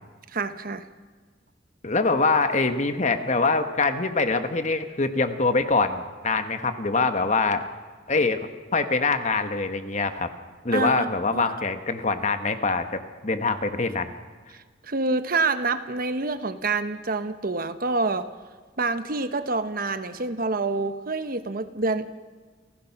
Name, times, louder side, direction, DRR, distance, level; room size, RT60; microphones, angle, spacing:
voice 1, 0.3-0.8 10.7-11.5 14.5-18.3 18.8-22.1, right 3 dB, 50° right, 11 dB, 1.0 m, -27 dB
voice 2, 1.8-7.6 8.1-10.3 10.6-14.1, left 3 dB, 40° left, 8 dB, 1.3 m, -24 dB
29.0 x 15.5 x 5.9 m, 1.5 s
head